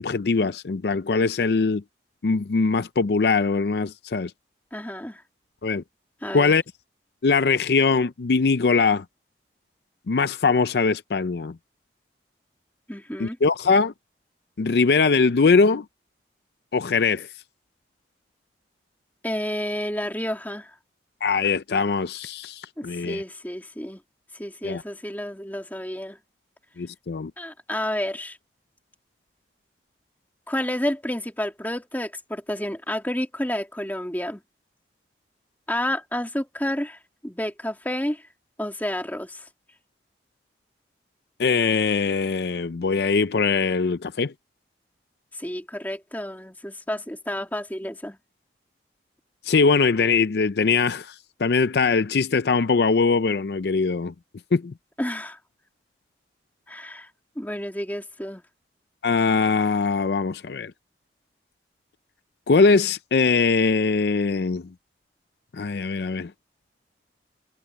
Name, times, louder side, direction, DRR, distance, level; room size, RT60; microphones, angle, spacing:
voice 1, 0.0-1.8 2.2-4.3 5.6-5.8 6.3-6.6 7.2-9.0 10.1-11.6 13.2-13.9 14.6-15.8 16.7-17.3 21.2-23.2 24.6-24.8 26.8-27.3 41.4-44.3 49.4-51.1 51.4-54.1 54.5-54.7 59.0-60.7 62.5-64.7 65.5-66.3, left 4 dB, 65° left, 0.5 m, -21 dB
voice 2, 4.7-5.2 6.2-6.5 12.9-13.4 19.2-20.7 22.8-24.0 24.4-26.2 27.4-28.4 30.5-34.4 35.7-38.3 38.6-39.5 45.3-48.2 55.0-55.4 56.7-57.1 57.4-58.4, left 1 dB, 10° left, 2.3 m, -30 dB
head